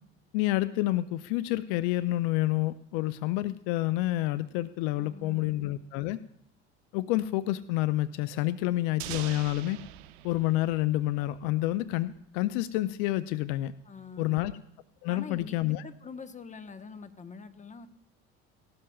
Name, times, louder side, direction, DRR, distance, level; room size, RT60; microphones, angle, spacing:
voice 1, 0.3-6.2 6.9-9.8 10.2-13.7 14.2-14.5 15.0-15.8, left 16 dB, 70° left, 15 dB, 0.5 m, -28 dB
voice 2, 5.0-5.6 13.8-14.5 15.1-17.9, left 5 dB, 25° left, 10 dB, 1.1 m, -45 dB
sound 1, 9.0-11.8, right 15 dB, 75° right, 0.7 m, -43 dB
18.0 x 12.5 x 2.3 m, 0.72 s
hypercardioid pair, 70°, 32 cm